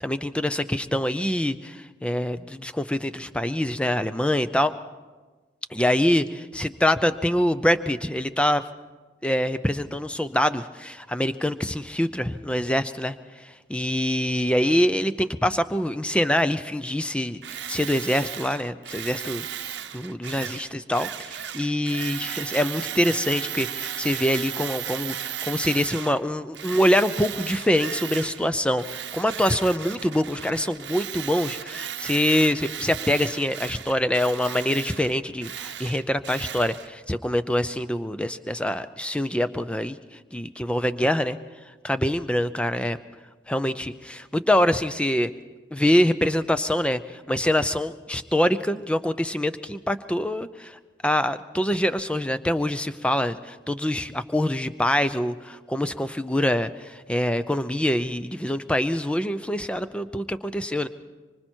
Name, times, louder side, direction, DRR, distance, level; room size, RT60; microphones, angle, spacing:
voice 1, 0.0-4.7 5.7-8.6 9.2-13.2 13.4-40.0 40.3-41.4 41.8-43.0 43.5-45.3 45.7-60.9, left 1 dB, 5° left, 11 dB, 0.5 m, -25 dB
Tools, 17.4-26.2 26.5-28.5 28.8-36.9, right 10 dB, 75° right, 0.8 m, -35 dB
25.0 x 24.5 x 4.5 m, 1.3 s
head